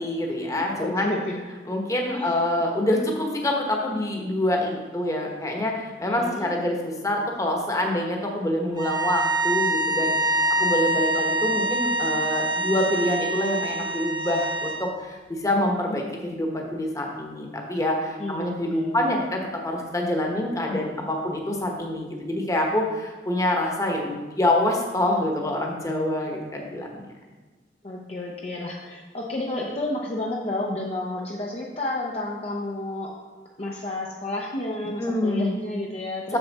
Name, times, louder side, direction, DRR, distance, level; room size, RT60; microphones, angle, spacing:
voice 1, 0.0-1.1 1.7-27.0 35.0-35.5 36.3-36.4, left 1 dB, 20° left, 0 dB, 1.1 m, -26 dB
voice 2, 0.5-1.4 2.1-2.6 6.1-6.5 18.2-19.0 27.8-33.1 33.6-36.4, left 2 dB, 35° left, -2 dB, 0.7 m, -31 dB
sound 1, 8.7-14.9, right 1 dB, 25° right, 0.5 m, -25 dB
7.0 x 6.9 x 4.1 m, 1.3 s
head